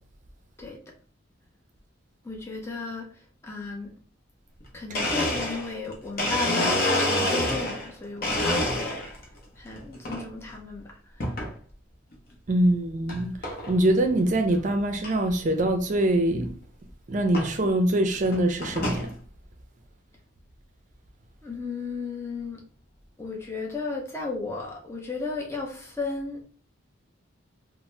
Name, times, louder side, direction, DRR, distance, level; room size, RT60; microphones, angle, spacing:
voice 1, 2.2-3.9 4.7-9.1 9.5-11.3 21.4-22.6 23.2-26.4, left 3 dB, 15° left, 0.5 m, -34 dB
Domestic sounds home sounds, 4.6-4.7 4.9-7.9 8.2-9.2 9.7-10.2 11.2-11.5 12.1-12.2 13.1-13.2 13.4-13.8 14.2-14.3 14.5-14.6 15.0-15.1 16.5-16.6 17.3-17.5 18.1-19.1, left 1 dB, 50° left, 0.7 m, -27 dB
voice 2, 12.5-13.4 13.7-16.5 17.1-19.1, right 1 dB, 40° right, 0.4 m, -23 dB
2.7 x 2.0 x 3.2 m
head